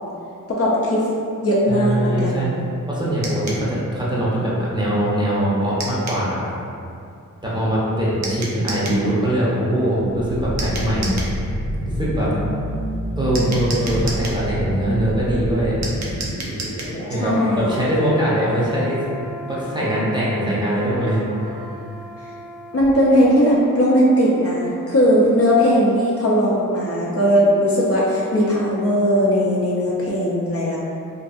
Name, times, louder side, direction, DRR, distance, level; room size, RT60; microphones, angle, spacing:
voice 1, 0.5-1.0 1.4-2.5 17.2-17.7 22.7-30.8, equal, 45° left, -5 dB, 0.4 m, -18 dB
voice 2, 1.7-2.5 2.9-6.5 7.4-11.2 12.0-12.3 13.2-15.8 17.1-19.0 19.5-21.9, right 1 dB, 15° right, -8 dB, 0.6 m, -22 dB
sound 1, 3.2-3.6 5.8-6.2 8.2-9.0 10.6-11.3 13.3-14.4 15.8-17.0, right 2 dB, 60° right, 0.5 m, -31 dB
sound 2, 10.0-24.8 25.1-25.3, equal, 75° right, 1.0 m, -30 dB
2.6 x 2.4 x 2.3 m, 2.5 s
wide cardioid pair, 90°, 33 cm